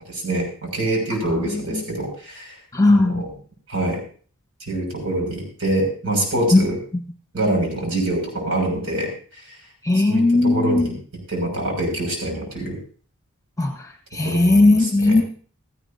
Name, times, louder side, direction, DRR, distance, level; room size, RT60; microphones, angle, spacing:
voice 1, 0.1-2.6 2.9-3.3 3.7-4.0 4.6-6.8 7.3-9.6 9.9-11.0 11.3-12.8 14.2-15.2, right 1 dB, 60° right, 1 dB, 6.2 m, -25 dB
voice 2, 1.2-1.8 2.7-3.2 6.5-6.6 9.8-10.9 13.6-15.2, left 2 dB, 15° left, 5 dB, 1.2 m, -18 dB
17.0 x 14.5 x 2.8 m, 0.42 s
head